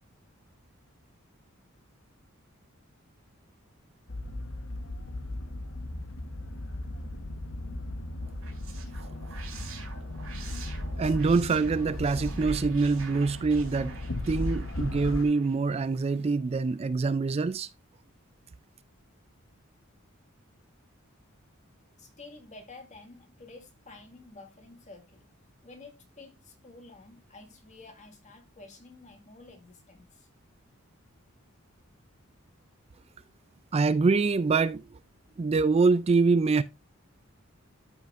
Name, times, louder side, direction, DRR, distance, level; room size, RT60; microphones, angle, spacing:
sound 1, 4.1-15.2, left 1 dB, 70° left, 1.0 m, -36 dB
sound 2, 8.2-16.3, right 5 dB, 85° right, 3.8 m, -48 dB
voice 1, 11.0-14.0 14.3-17.7 33.7-34.9 35.4-36.6, right 4 dB, 30° right, 0.3 m, -25 dB
voice 2, 22.0-25.3 25.6-30.3, left 3 dB, 35° left, 1.9 m, -50 dB
13.0 x 5.9 x 2.5 m
head